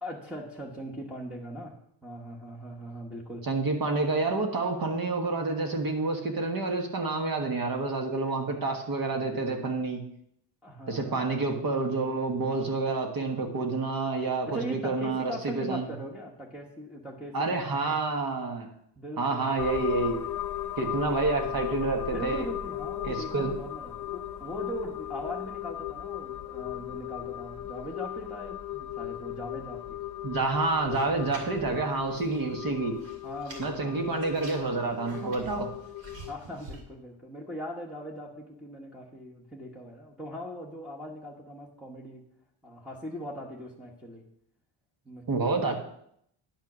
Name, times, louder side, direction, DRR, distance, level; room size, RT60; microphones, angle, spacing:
voice 1, 0.0-3.5 10.6-11.2 14.5-18.0 19.0-19.8 21.4-21.7 22.1-30.0 33.2-34.0 35.1-35.4 36.3-42.2 42.6-44.2 45.0-45.6, equal, ahead, -5 dB, 1.2 m, -40 dB
voice 2, 3.4-10.0 10.9-15.9 17.3-18.7 19.2-20.2 20.8-22.5 23.0-23.5 30.2-33.0 33.6-35.7 45.3-45.8, right 3 dB, 45° right, 3 dB, 1.4 m, -28 dB
sound 1, 19.6-36.3, left 13 dB, 45° left, 0.7 m, -37 dB
sound 2, 30.9-32.5 32.8-33.7 34.1-36.8, right 2 dB, 65° right, 2.6 m, -47 dB
10.5 x 5.6 x 6.0 m, 0.71 s
cardioid pair, 155°, 49 cm